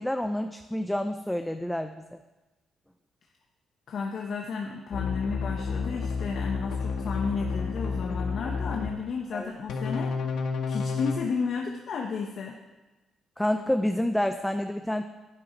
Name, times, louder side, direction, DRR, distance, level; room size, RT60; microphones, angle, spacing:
voice 1, 0.0-2.2 9.3-9.5 13.4-15.1, left 1 dB, 5° left, 7 dB, 0.5 m, -28 dB
voice 2, 3.9-10.1 10.7-12.6, left 5 dB, 60° left, 1 dB, 0.9 m, -33 dB
sound 1, 4.9-8.9 9.7-11.2, left 5 dB, 80° left, 1.5 m, -30 dB
10.5 x 8.8 x 5.2 m, 1.2 s
cardioid pair, 90°, 0 cm